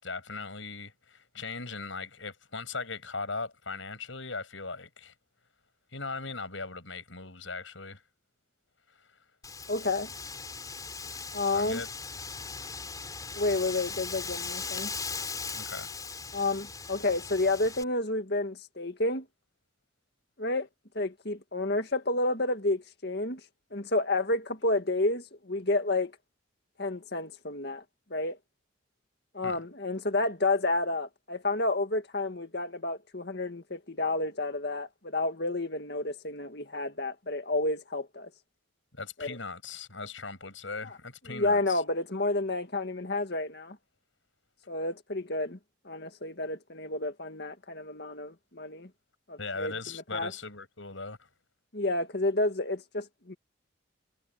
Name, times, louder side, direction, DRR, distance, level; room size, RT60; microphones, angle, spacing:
voice 1, 0.0-5.1 5.9-8.0 11.5-11.9 15.5-15.9 29.4-29.6 38.9-41.8 49.4-51.3, left 4 dB, 75° left, 7.0 m, -39 dB
Wind, 9.4-17.8, left 4 dB, 20° left, 4.7 m, -39 dB
voice 2, 9.7-10.1 11.3-11.8 13.4-14.9 16.3-19.3 20.4-20.7 21.0-23.4 23.7-26.1 26.8-27.8 28.1-28.4 29.3-38.3 39.2-39.4 41.3-43.8 44.7-45.6 45.8-48.9 49.3-50.3 51.7-53.3, left 2 dB, 55° left, 2.0 m, -30 dB
head